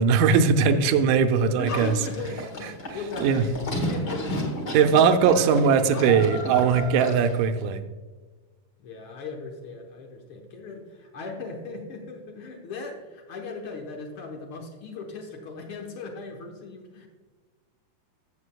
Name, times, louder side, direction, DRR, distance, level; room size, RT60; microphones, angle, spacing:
voice 1, 0.0-1.9 3.2-3.4 4.7-7.8, right 6 dB, 80° right, 8 dB, 2.0 m, -20 dB
voice 2, 1.4-5.9 8.8-17.1, left 3 dB, 85° left, 1 dB, 1.1 m, -38 dB
Livestock farm animals working animals, 1.7-7.4, equal, 45° left, 1.3 m, -33 dB
14.5 x 7.7 x 2.2 m, 1.4 s
omnidirectional pair, 4.0 m